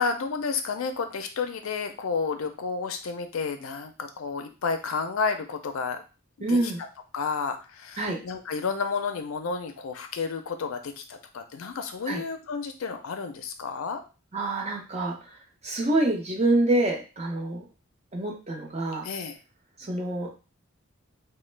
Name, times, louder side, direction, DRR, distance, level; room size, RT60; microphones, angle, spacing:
voice 1, 0.0-6.0 6.4-6.7 7.1-14.0 19.0-19.4, left 5 dB, 80° left, 7 dB, 0.5 m, -31 dB
voice 2, 6.4-6.8 8.0-8.2 12.1-12.2 14.3-15.2 15.6-17.6 18.1-19.1 19.8-20.3, right 2 dB, 30° right, 0 dB, 0.7 m, -26 dB
3.0 x 2.1 x 3.2 m, 0.32 s
head